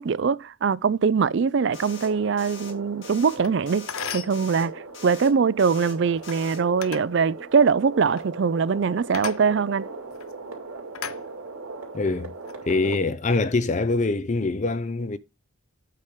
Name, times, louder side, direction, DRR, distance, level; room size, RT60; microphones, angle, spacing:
voice 1, 0.0-9.9, right 5 dB, 55° right, 0.4 m, -22 dB
sound 1, 1.7-2.1 2.4-2.7 3.0-3.4 3.7-4.0 4.3-4.7 4.9-5.3 5.6-6.0 6.2-6.6, left 5 dB, 55° left, 2.1 m, -43 dB
mom's & baby's heartbeats, 1.7-13.0, right 3 dB, 85° right, 2.5 m, -39 dB
sound 2, 3.4-3.5 3.9-4.4 6.1-6.4 6.8-7.1 8.0-8.3 9.1-9.4 10.1-10.3 10.9-11.7 12.2-12.5, left 9 dB, 80° left, 0.6 m, -36 dB
voice 2, 11.9-12.3 12.7-15.2, left 3 dB, 35° left, 0.4 m, -24 dB
8.6 x 4.6 x 5.1 m
head